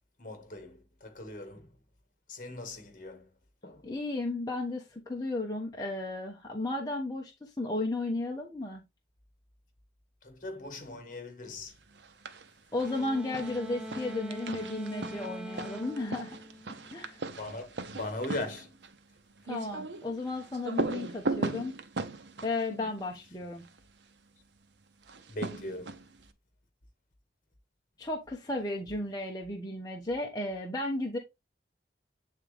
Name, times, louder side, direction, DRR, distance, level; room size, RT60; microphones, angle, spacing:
voice 1, 0.2-1.7 2.3-3.3 3.6-3.9 10.2-11.7 17.4-18.7 25.3-25.9, left 2 dB, 45° left, 1.7 m, -40 dB
voice 2, 3.8-8.8 12.7-16.4 16.9-17.2 19.5-21.8 22.4-23.6 28.0-31.2, left 2 dB, 20° left, 0.9 m, -34 dB
sound 1, 11.9-12.5 12.8-23.8 25.0-26.2, right 3 dB, 75° right, 0.8 m, -38 dB
sound 2, 12.8-17.3, left 1 dB, 5° right, 0.5 m, -42 dB
8.5 x 3.7 x 3.4 m
head